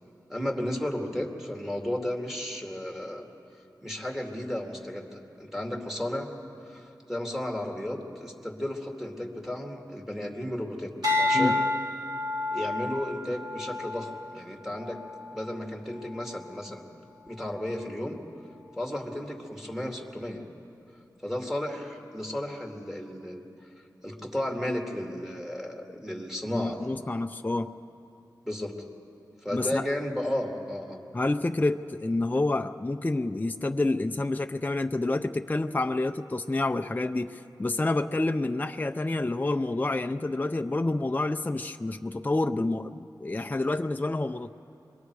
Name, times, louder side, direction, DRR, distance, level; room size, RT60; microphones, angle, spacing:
voice 1, 0.3-3.2 3.8-6.3 6.6-10.9 11.2-11.7 12.5-15.0 15.3-16.8 17.3-18.2 18.8-20.4 21.2-23.4 24.0-26.9 28.4-28.8 29.4-31.0, left 1 dB, 5° right, 1 dB, 2.5 m, -33 dB
sound 1, 11.0-15.5 16.1-16.5, left 2 dB, 60° right, 3.4 m, -30 dB
voice 2, 26.5-27.7 29.5-29.9 31.1-44.5, left 2 dB, 25° left, 6 dB, 0.5 m, -28 dB
26.0 x 22.0 x 4.8 m, 2.8 s
wide cardioid pair, 55°, 8 cm